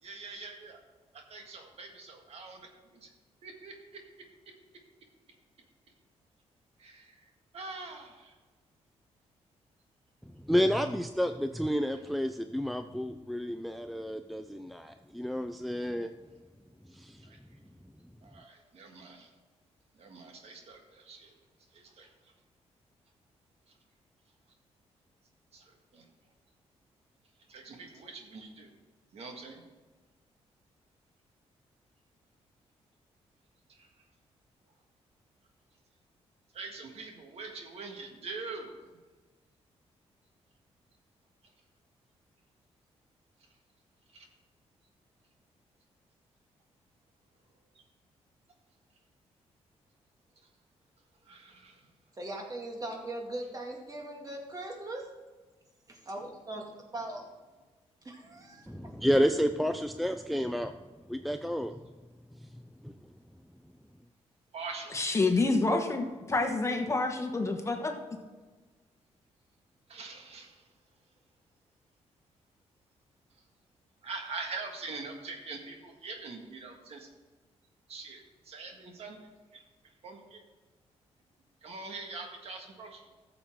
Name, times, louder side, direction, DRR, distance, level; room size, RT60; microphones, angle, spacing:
voice 1, 0.0-0.8 1.1-3.1 3.4-4.0 4.4-4.5 6.8-8.3 15.8-16.0 17.2-17.6 18.2-19.3 19.9-21.3 21.7-22.1 23.7-23.8 25.5-26.1 27.5-28.7 29.1-29.6 33.7-33.9 36.5-38.8 44.1-44.3 47.7-47.8 51.2-51.8 64.5-65.0 69.9-70.7 74.0-77.1 77.9-79.6 80.0-80.4 81.6-83.1, right 4 dB, 65° right, 3 dB, 1.8 m, -44 dB
voice 2, 10.3-16.1 16.9-17.3 58.7-60.7 61.1-61.8 62.3-63.1, equal, ahead, 8 dB, 0.4 m, -30 dB
voice 3, 52.1-55.1 55.9-57.2 58.1-58.7, right 1 dB, 30° right, 1 dB, 2.1 m, -40 dB
voice 4, 64.9-68.0, left 3 dB, 25° left, 4 dB, 1.3 m, -28 dB
13.5 x 7.1 x 3.7 m, 1.3 s
cardioid pair, 100°, 11 cm